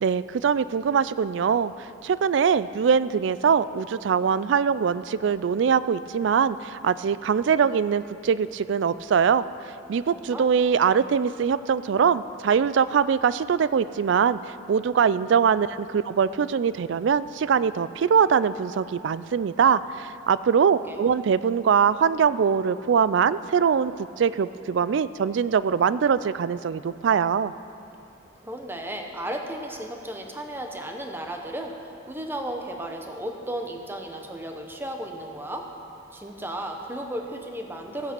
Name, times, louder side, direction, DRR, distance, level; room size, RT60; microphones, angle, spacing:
voice 1, 0.0-1.7 2.0-9.4 9.9-14.4 14.7-27.5, right 7 dB, 65° right, 16 dB, 0.3 m, -22 dB
voice 2, 10.1-10.5 20.7-21.0 28.4-35.7 36.1-38.1, right 1 dB, 10° right, 3 dB, 0.9 m, -34 dB
15.0 x 8.9 x 6.0 m, 2.8 s
head